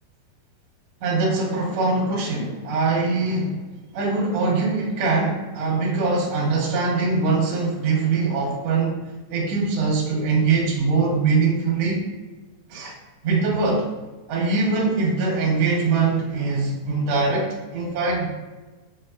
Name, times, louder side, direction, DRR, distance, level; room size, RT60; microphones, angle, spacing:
voice 1, 1.0-3.6 3.9-9.0 9.3-12.0 12.7-12.9 13.2-13.8 14.3-18.3, right 4 dB, 80° right, -3 dB, 1.4 m, -22 dB
6.0 x 2.5 x 2.4 m, 1.2 s
omnidirectional pair, 4.3 m